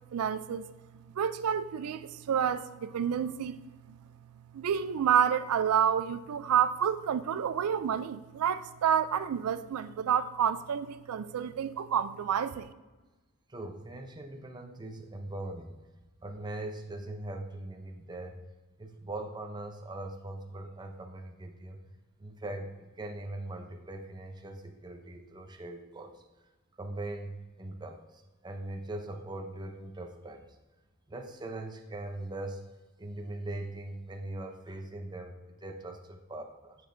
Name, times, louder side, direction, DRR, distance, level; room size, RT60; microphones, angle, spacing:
voice 1, 0.1-0.7 1.2-3.6 3.9-4.0 4.5-12.7, right 8 dB, 90° right, 0.4 m, -29 dB
voice 2, 13.5-15.8 16.2-18.4 18.8-21.8 22.2-26.2 26.8-28.0 28.4-30.4 31.1-32.6 33.0-36.8, right 2 dB, 20° right, 0.6 m, -41 dB
9.7 x 6.0 x 2.6 m
head